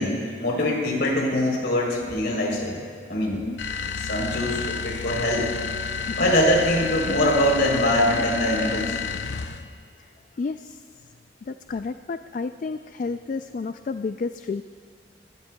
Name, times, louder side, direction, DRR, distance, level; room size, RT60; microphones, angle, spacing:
voice 1, 0.0-2.8 3.1-3.4 4.0-5.5 6.2-9.0, left 1 dB, 65° left, -1 dB, 3.5 m, -23 dB
sound 1, 3.6-9.7, left 6 dB, 85° left, 0.7 m, -30 dB
voice 2, 10.4-10.8 11.4-14.6, left 4 dB, 45° left, 9 dB, 0.3 m, -31 dB
24.0 x 16.5 x 2.3 m, 2.1 s
head